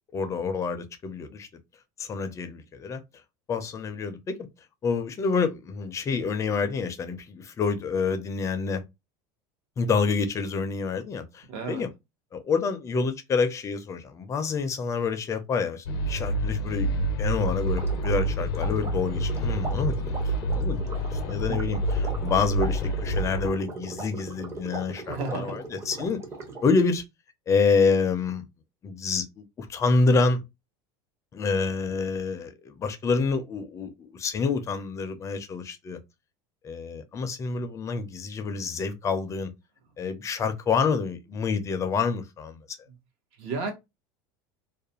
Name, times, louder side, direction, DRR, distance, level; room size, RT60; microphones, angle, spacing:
voice 1, 0.1-1.5 2.0-3.0 3.5-4.4 4.8-8.8 9.8-11.9 12.3-20.9 21.2-26.2 26.6-27.0 27.5-28.4 28.8-30.4 31.3-36.0 36.6-39.5 40.0-42.8, left 4 dB, 25° left, 0.4 m, -27 dB
voice 2, 11.5-11.8 21.5-21.7 25.0-25.6 43.4-43.7, right 4 dB, 60° right, 1.0 m, -32 dB
sound 1, 15.9-23.5, right 1 dB, 85° left, 0.4 m, -28 dB
sound 2, 17.4-26.8, right 3 dB, 25° right, 0.7 m, -39 dB
2.4 x 2.1 x 2.8 m
supercardioid pair, 130°, 12 cm